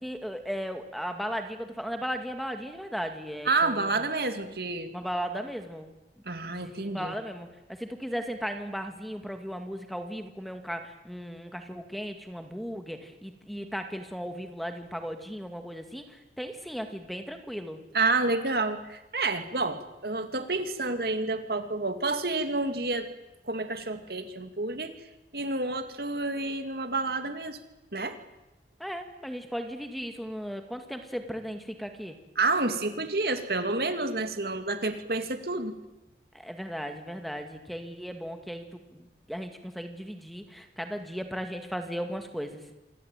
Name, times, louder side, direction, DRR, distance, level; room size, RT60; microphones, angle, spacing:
voice 1, 0.0-4.0 4.9-5.9 6.4-17.8 28.8-32.2 36.3-42.6, equal, ahead, 6 dB, 2.1 m, -36 dB
voice 2, 3.4-4.9 6.3-7.1 17.9-23.1 23.5-24.9 25.3-27.6 27.9-28.2 32.4-35.8, right 3 dB, 60° right, 8 dB, 2.4 m, -29 dB
27.0 x 21.0 x 9.1 m, 0.97 s
head